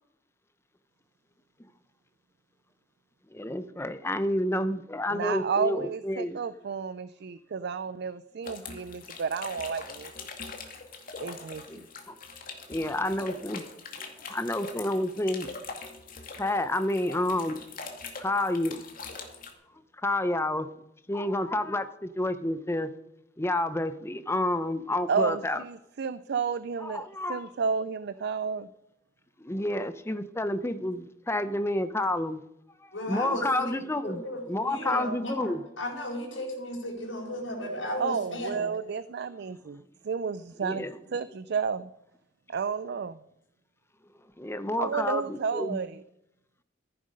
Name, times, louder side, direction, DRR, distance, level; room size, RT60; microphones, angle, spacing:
voice 1, 3.3-6.4 11.7-12.2 12.7-13.6 14.3-15.5 16.4-17.6 18.2-18.8 20.0-20.7 21.1-22.9 23.4-25.6 26.8-27.5 29.4-32.4 32.8-34.2 34.5-35.6 40.6-41.0 44.4-45.8, left 1 dB, 15° left, 12 dB, 0.7 m, -29 dB
voice 2, 5.1-10.1 11.2-11.8 25.1-28.7 38.0-41.9 42.5-43.2 44.8-46.0, right 5 dB, 60° right, 14 dB, 0.4 m, -31 dB
sound 1, 8.4-19.5, left 4 dB, 45° left, 2.2 m, -42 dB
voice 3, 32.9-38.7, equal, 85° left, -3 dB, 4.7 m, -35 dB
14.5 x 10.5 x 5.2 m, 0.85 s
head